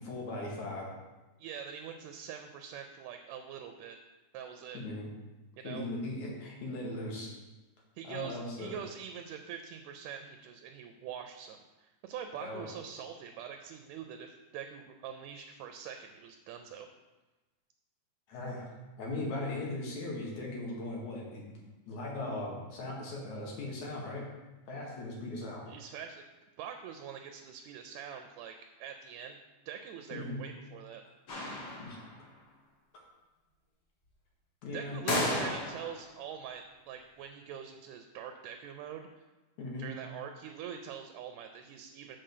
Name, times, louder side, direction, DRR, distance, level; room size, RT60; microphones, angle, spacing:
voice 1, 0.0-0.9 4.7-5.1 5.6-7.3 8.0-8.7 12.4-12.7 18.3-18.7 19.0-21.5 21.9-24.2 24.7-25.7 30.1-30.4 31.8-32.0 34.6-35.4 39.6-39.9, left 2 dB, 80° left, -3 dB, 3.2 m, -38 dB
voice 2, 1.4-4.0 4.3-4.8 5.6-5.9 8.0-16.9 25.7-26.2 26.6-29.4 29.7-31.0 34.7-39.1 39.8-42.2, right 8 dB, 80° right, 6 dB, 1.8 m, -44 dB
sound 1, 31.3-32.2 35.1-36.1, left 1 dB, 50° left, 2.2 m, -33 dB
7.6 x 4.1 x 6.6 m, 1.1 s
omnidirectional pair, 3.3 m